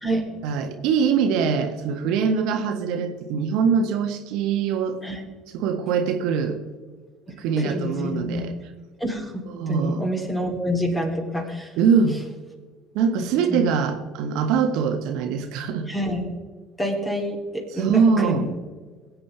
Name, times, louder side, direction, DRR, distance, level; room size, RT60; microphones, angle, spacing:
voice 1, 0.4-5.0 5.5-6.6 7.4-8.5 9.5-10.0 11.8-12.2 12.9-15.9 17.7-18.5, right 6 dB, 65° right, 6 dB, 1.5 m, -23 dB
voice 2, 7.6-8.5 9.0-11.7 13.2-13.7 15.9-16.3 16.8-18.5, equal, 15° left, 1 dB, 3.4 m, -27 dB
22.0 x 8.7 x 3.4 m, 1.5 s
figure-of-eight pair, 60°, 0 cm